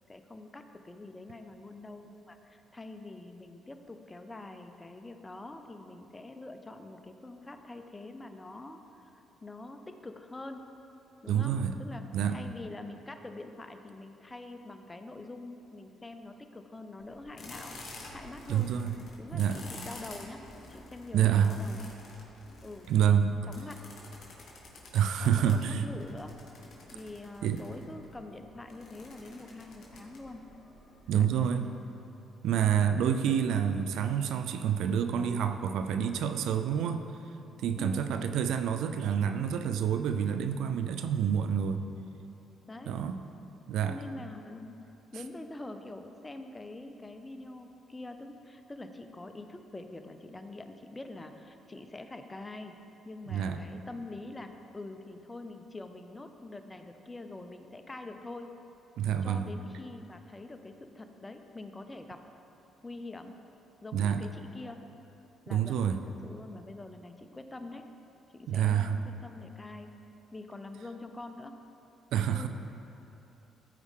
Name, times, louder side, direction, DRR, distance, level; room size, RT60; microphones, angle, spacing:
voice 1, 0.0-9.1 9.4-10.6 11.2-17.7 18.1-18.7 19.2-20.4 20.7-21.9 22.6-22.9 23.5-23.8 25.2-26.3 26.9-30.5 31.1-31.3 32.5-32.9 37.8-38.1 42.7-43.0 43.8-44.7 45.1-52.8 53.0-58.5 59.2-62.2 62.8-63.4 63.8-64.8 65.5-67.8 68.3-69.9 70.3-71.5 72.3-72.5, left 2 dB, 20° left, 7 dB, 0.7 m, -45 dB
voice 2, 11.3-11.8 12.1-12.4 18.5-19.0 19.3-19.6 21.1-21.6 22.9-23.3 24.9-25.9 27.4-27.6 31.1-31.7 32.4-37.0 37.6-41.9 42.9-43.2 43.7-44.0 53.3-53.6 59.0-59.5 63.9-64.3 65.5-66.0 68.5-69.0 72.1-72.5, right 8 dB, 75° right, 8 dB, 0.4 m, -28 dB
sound 1, 17.0-31.5, left 2 dB, 55° left, 1.8 m, -50 dB
14.0 x 4.7 x 3.7 m, 2.9 s
supercardioid pair, 65°, 0 cm